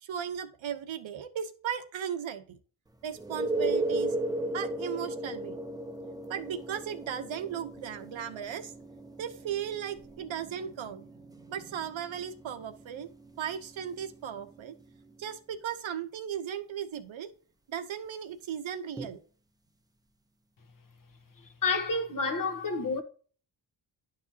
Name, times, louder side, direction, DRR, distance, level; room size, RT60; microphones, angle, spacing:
voice 1, 0.0-2.6 3.0-4.1 4.5-5.6 6.3-8.7 9.2-13.1 13.4-14.8 15.2-17.3 17.7-19.2, right 8 dB, 75° right, 0.9 m, -36 dB
sound 1, 3.2-14.7 19.0-19.1, right 2 dB, 10° right, 0.7 m, -36 dB
voice 2, 21.6-23.0, left 3 dB, 45° left, 1.2 m, -29 dB
10.5 x 5.0 x 2.8 m
wide cardioid pair, 105°, 47 cm